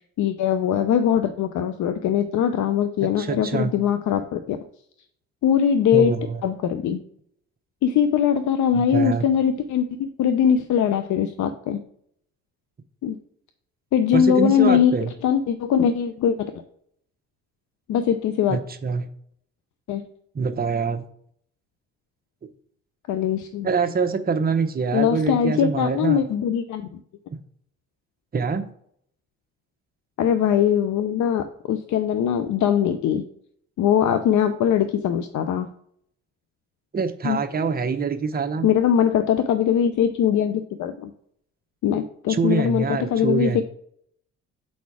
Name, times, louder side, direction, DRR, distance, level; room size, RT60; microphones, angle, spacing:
voice 1, 0.2-4.6 5.4-6.1 6.4-7.0 7.8-11.8 13.0-13.2 13.9-14.9 15.2-16.5 17.9-18.6 19.9-20.0 23.1-23.7 24.9-26.9 30.2-33.2 33.8-35.7 37.2-37.4 38.6-41.1 41.8-43.6, left 8 dB, 70° left, 9 dB, 0.6 m, -21 dB
voice 2, 3.2-3.7 5.9-6.4 8.7-9.3 14.1-15.1 18.5-19.1 20.3-21.0 23.6-26.2 27.3-27.4 28.3-28.7 36.9-38.7 42.3-43.6, right 5 dB, 30° right, 7 dB, 0.9 m, -25 dB
6.9 x 4.2 x 4.7 m, 0.66 s
cardioid pair, 90°, 30 cm